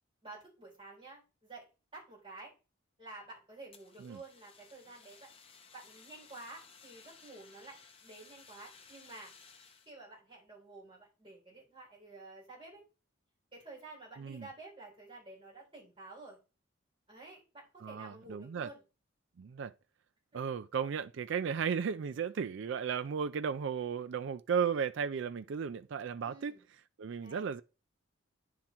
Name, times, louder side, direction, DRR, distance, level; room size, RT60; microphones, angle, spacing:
voice 1, 0.2-1.7 1.9-2.5 3.0-5.3 5.7-9.3 9.9-12.8 13.5-16.4 17.1-18.8 20.3-20.4 26.2-26.6 27.2-27.5, right 2 dB, 25° right, 4.2 m, -51 dB
Fire, 3.7-9.9, left 5 dB, 25° left, 0.9 m, -58 dB
voice 2, 17.8-18.7 19.4-19.7 20.3-26.6 27.0-27.6, right 6 dB, 65° right, 0.3 m, -35 dB
9.5 x 3.8 x 4.4 m
head